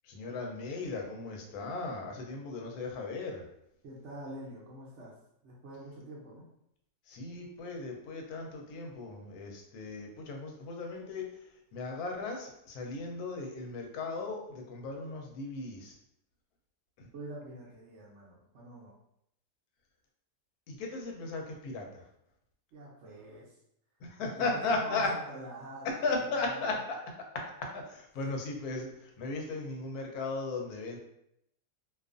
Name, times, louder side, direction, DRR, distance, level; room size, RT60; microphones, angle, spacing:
voice 1, 0.0-3.4 7.1-15.9 17.0-17.1 20.7-22.0 24.0-25.1 25.8-27.0 27.3-31.0, left 3 dB, 90° left, 2 dB, 1.1 m, -36 dB
voice 2, 3.8-5.2 5.4-6.5 17.1-19.0 22.7-23.6 24.3-24.5 24.7-26.8, right 1 dB, 65° right, -4 dB, 0.8 m, -46 dB
2.5 x 2.3 x 2.4 m, 0.76 s
omnidirectional pair, 1.6 m